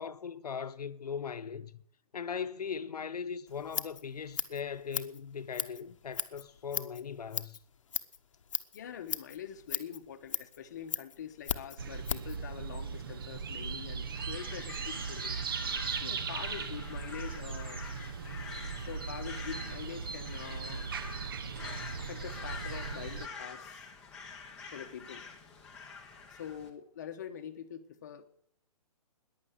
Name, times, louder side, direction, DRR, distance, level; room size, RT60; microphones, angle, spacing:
voice 1, 0.0-1.8 2.1-7.6, left 6 dB, 85° left, 1.1 m, -39 dB
Scissors, 3.5-12.4, left 7 dB, 55° left, 1.0 m, -38 dB
voice 2, 8.7-15.4 15.9-17.8 18.7-20.9 21.6-23.9 24.7-25.2 26.3-28.2, left 9 dB, 30° left, 1.1 m, -45 dB
sound 1, 11.8-23.3, right 5 dB, 35° right, 0.9 m, -38 dB
Crow, 14.0-26.7, left 5 dB, 5° left, 0.9 m, -47 dB
15.0 x 10.5 x 8.1 m
hypercardioid pair, 175°, 19 cm